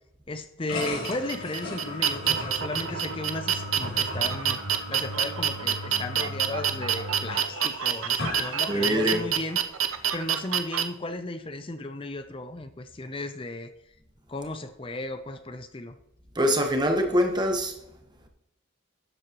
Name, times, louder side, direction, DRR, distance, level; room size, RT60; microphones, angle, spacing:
voice 1, 0.3-4.6 4.9-9.6 10.1-13.7 14.3-15.9, left 2 dB, 25° left, 9 dB, 0.5 m, -35 dB
sound 1, 0.7-9.4, left 2 dB, 90° left, 3.4 m, -36 dB
sound 2, 0.8-10.8, right 9 dB, 85° right, 0.7 m, -27 dB
voice 2, 8.7-9.2 16.3-17.7, equal, 20° right, 4 dB, 1.2 m, -24 dB
12.5 x 7.8 x 3.0 m, 0.84 s
head